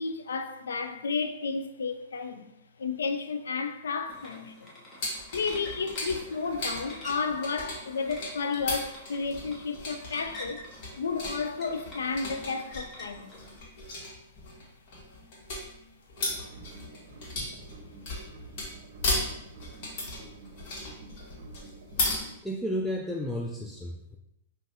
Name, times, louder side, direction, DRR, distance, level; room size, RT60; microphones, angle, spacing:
voice 1, 0.0-2.5 2.8-4.7 5.3-10.6 11.0-13.3, left 4 dB, 85° left, 0.4 m, -32 dB
sound 1, 4.1-13.6, left 1 dB, 20° left, 1.0 m, -47 dB
sound 2, 5.0-22.2, left 2 dB, 50° left, 1.4 m, -36 dB
sound 3, 16.2-22.4, right 2 dB, 65° right, 0.6 m, -49 dB
voice 2, 22.4-24.2, equal, ahead, 0.3 m, -32 dB
5.3 x 2.5 x 2.7 m
hypercardioid pair, 125°, 0 cm